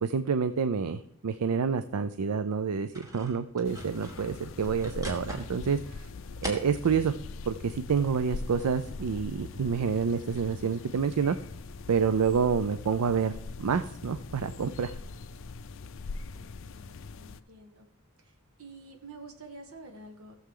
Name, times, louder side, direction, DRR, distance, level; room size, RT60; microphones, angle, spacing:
voice 1, 0.0-6.1 6.4-7.2 7.5-11.4 11.9-14.9, right 6 dB, 90° right, 11 dB, 0.4 m, -28 dB
sound 1, 2.9-7.1 7.6-11.4, equal, 15° right, 1.7 m, -45 dB
sound 2, 3.6-17.4, left 3 dB, 60° left, 0.4 m, -42 dB
voice 2, 16.3-17.9 18.2-20.4, right 2 dB, 70° right, 4 dB, 1.6 m, -49 dB
16.5 x 7.1 x 3.8 m, 0.67 s
head